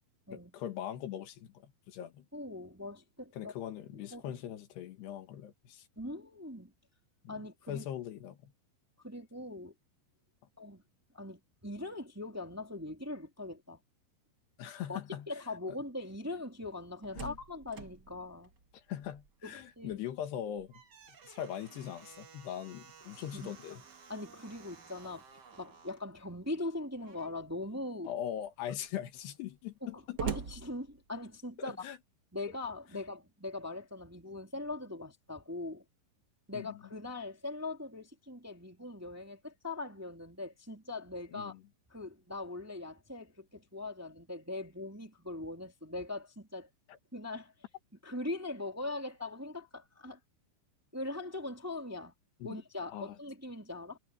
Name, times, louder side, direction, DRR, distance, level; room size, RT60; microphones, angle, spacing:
voice 1, 0.3-2.3 3.3-5.9 7.2-7.4 7.7-8.5 14.6-15.3 17.2-17.4 18.7-20.8 21.2-23.8 28.1-30.2 31.8-32.0 36.5-36.7 41.3-41.6 46.9-47.0 52.4-52.6 52.9-53.2, left 10 dB, 85° left, 3.8 m, -41 dB
voice 2, 2.3-3.5 3.9-4.2 6.0-6.7 7.3-7.9 9.0-9.7 10.6-10.8 11.1-13.8 14.9-15.0 15.3-18.5 19.4-20.0 23.1-23.8 24.1-25.2 25.5-28.1 29.8-31.9 32.3-35.8 36.5-41.6 41.9-46.7 47.1-47.5 48.0-50.2 50.9-52.1 52.4-54.0, left 2 dB, 5° right, 1.8 m, -41 dB
Slam, 16.7-19.5 19.9-20.0 20.4-26.1 27.0-27.5 28.0-28.1 28.4-31.5, right 6 dB, 75° right, 0.9 m, -46 dB
omnidirectional pair, 4.6 m